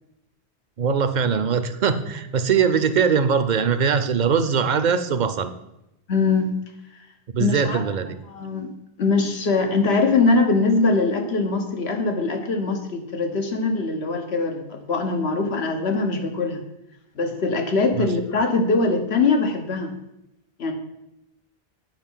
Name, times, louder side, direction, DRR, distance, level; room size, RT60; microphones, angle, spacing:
voice 1, 0.8-5.5 7.3-8.2 17.9-18.1, right 6 dB, 55° right, 11 dB, 0.7 m, -21 dB
voice 2, 6.1-6.5 7.4-7.8 8.3-8.7 9.0-16.6 17.2-19.9 20.6-20.7, left 3 dB, 90° left, 4 dB, 1.4 m, -22 dB
8.9 x 5.3 x 5.5 m, 0.88 s
omnidirectional pair, 1.0 m